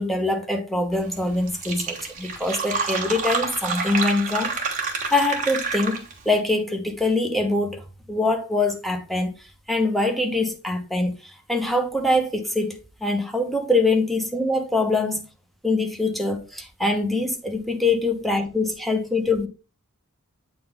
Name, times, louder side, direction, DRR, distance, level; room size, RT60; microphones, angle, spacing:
voice 1, 0.0-4.6 5.1-7.8 8.1-9.3 9.7-15.2 15.6-19.5, left 2 dB, ahead, 1.1 m, -24 dB
Fill (with liquid), 1.2-1.3 1.5-6.3, right 4 dB, 35° right, 1.6 m, -28 dB
8.4 x 3.9 x 3.4 m
head